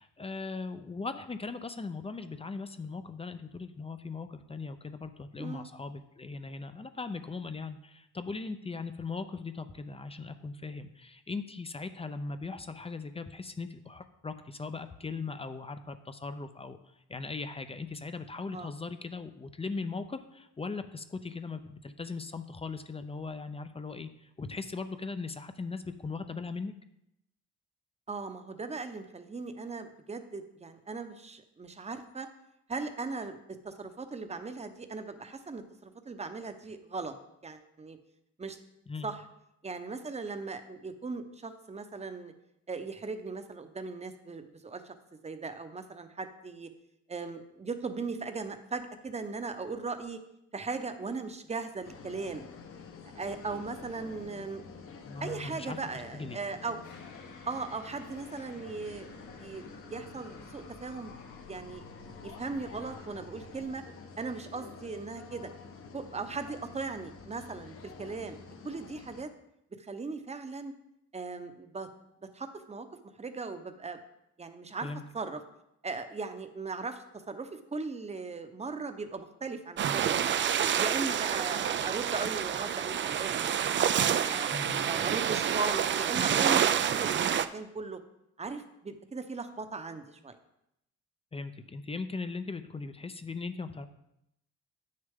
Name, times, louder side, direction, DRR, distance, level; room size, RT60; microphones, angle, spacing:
voice 1, 0.0-16.8 17.1-26.7 38.9-39.1 55.1-55.8 56.1-56.4 74.8-75.0 84.5-84.9 91.3-93.9, left 4 dB, 20° left, 10 dB, 0.5 m, -39 dB
voice 2, 28.1-32.3 32.7-33.4 33.6-37.1 37.4-38.0 38.4-38.6 39.0-39.2 39.6-42.3 42.7-44.9 45.2-46.7 47.1-50.2 50.5-52.4 53.1-54.6 55.2-56.8 57.5-59.6 59.9-61.1 61.5-61.9 62.2-63.8 64.2-65.5 65.9-68.4 68.6-69.3 69.8-70.7 71.1-71.9 72.3-72.9 73.2-74.0 74.4-74.9 75.1-75.4 75.8-80.2 80.6-84.5 84.8-88.0 88.4-90.3, right 4 dB, 20° right, 8 dB, 0.8 m, -38 dB
sound 1, 51.8-69.3, left 5 dB, 50° left, 1.0 m, -49 dB
sound 2, 56.8-63.7, left 3 dB, 85° left, 1.9 m, -53 dB
sound 3, 79.8-87.5, right 9 dB, 40° right, 0.4 m, -28 dB
8.6 x 6.6 x 3.6 m, 0.82 s
cardioid pair, 90°, 30 cm